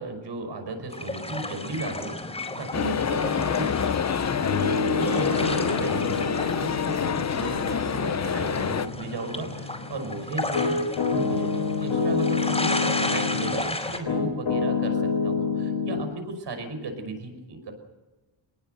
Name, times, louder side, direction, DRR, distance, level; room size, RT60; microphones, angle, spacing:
voice 1, 0.0-4.0 5.0-10.8 11.2-17.7, right 2 dB, 65° right, 6 dB, 5.8 m, -35 dB
sound 1, 0.9-14.0, left 2 dB, 15° left, 4.4 m, -34 dB
sound 2, 2.7-8.9, left 7 dB, 35° left, 0.7 m, -27 dB
Piano, 4.3-13.6 14.1-16.1, left 4 dB, 65° left, 4.5 m, -28 dB
25.0 x 20.5 x 6.8 m, 1.1 s
wide cardioid pair, 165°, 45 cm